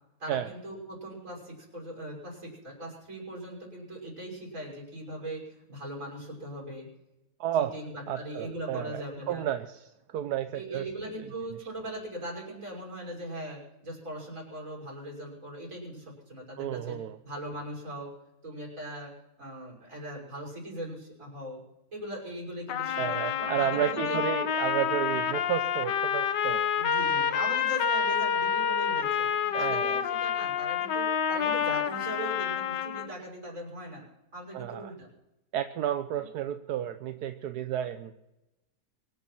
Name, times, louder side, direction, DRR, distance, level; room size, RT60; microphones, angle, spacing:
voice 1, 0.2-6.9 7.5-9.5 10.5-17.0 17.2-18.1 18.4-19.1 19.4-21.6 21.9-24.2 26.7-34.1 34.3-35.1 36.2-36.3, right 1 dB, 45° right, -2 dB, 6.4 m, -40 dB
voice 2, 7.4-7.7 8.1-9.7 10.1-10.9 16.6-17.2 23.0-26.7 29.5-30.0 34.5-34.8 35.5-38.1, right 11 dB, 70° right, 9 dB, 1.2 m, -31 dB
Trumpet, 22.7-33.1, left 7 dB, 75° left, 1.6 m, -28 dB
24.0 x 9.6 x 6.0 m, 0.95 s
omnidirectional pair, 1.9 m